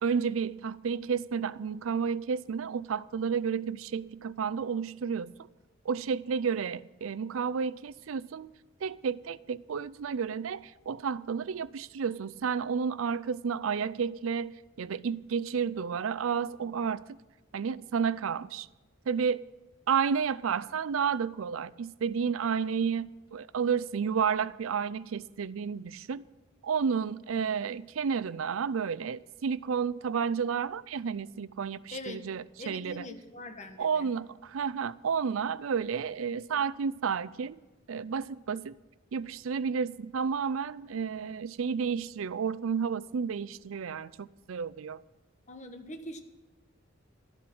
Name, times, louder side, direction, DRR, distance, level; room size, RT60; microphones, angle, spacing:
voice 1, 0.0-5.3 5.9-8.5 8.8-17.0 17.5-18.7 19.1-19.4 19.9-26.2 26.6-33.1 33.8-37.6 37.9-38.7 39.1-45.0, right 6 dB, 85° right, 0.4 m, -31 dB
voice 2, 31.9-32.2 32.6-34.1 45.5-46.2, left 2 dB, 35° left, 1.3 m, -42 dB
13.0 x 11.5 x 6.0 m
head